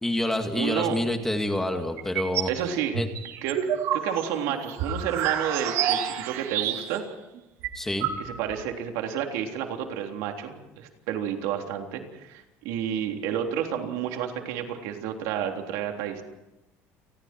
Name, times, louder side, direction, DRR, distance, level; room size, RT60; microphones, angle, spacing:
voice 1, 0.0-2.5 2.9-3.1 7.7-8.1, left 1 dB, 5° left, 5 dB, 2.1 m, -27 dB
voice 2, 0.5-1.0 2.5-3.0 3.4-3.6 3.9-7.0 8.2-16.2, right 9 dB, 85° right, 4 dB, 3.5 m, -30 dB
sound 1, 2.0-2.6 2.9-7.1 7.4-7.5 7.6-8.6, right 9 dB, 60° right, 2.7 m, -28 dB
29.5 x 20.5 x 4.6 m, 1.0 s
cardioid pair, 155°, 5 cm